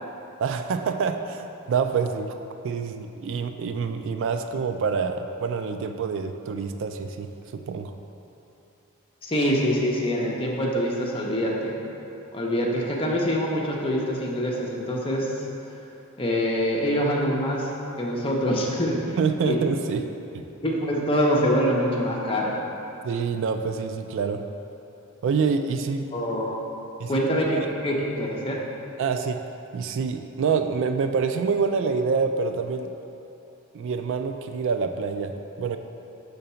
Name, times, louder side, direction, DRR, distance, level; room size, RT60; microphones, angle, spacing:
voice 1, 0.4-2.3 2.6-7.3 7.5-7.9 19.2-20.0 20.3-20.4 23.0-24.4 25.2-26.1 27.0-27.2 27.5-27.7 29.0-29.4 29.7-33.0 33.7-35.8, right 5 dB, 60° right, 7 dB, 0.3 m, -26 dB
voice 2, 9.2-11.7 12.3-15.3 16.2-17.7 18.0-19.2 19.4-19.6 20.6-22.6 26.1-26.6 27.1-28.6, equal, 25° left, -3 dB, 0.8 m, -25 dB
5.7 x 3.9 x 5.6 m, 2.9 s
head